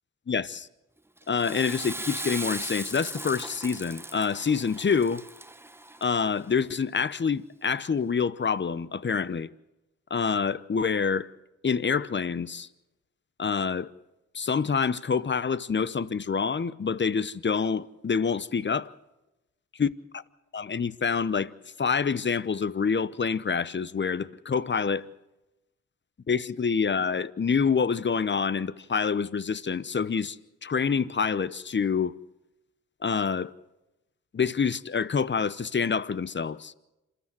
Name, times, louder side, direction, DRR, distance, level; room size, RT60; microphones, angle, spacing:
voice 1, 0.3-0.7 1.3-5.2 6.0-9.5 10.1-11.3 11.6-12.7 13.4-13.9 14.3-18.9 19.8-19.9 20.5-21.5 21.8-25.1 26.3-30.4 30.6-32.2 33.0-33.5 34.3-36.7, left 6 dB, 35° left, 0.9 m, -27 dB
Water / Toilet flush, 1.2-6.4, right 1 dB, 5° right, 1.0 m, -38 dB
27.5 x 13.0 x 7.7 m
supercardioid pair, 45°, 33 cm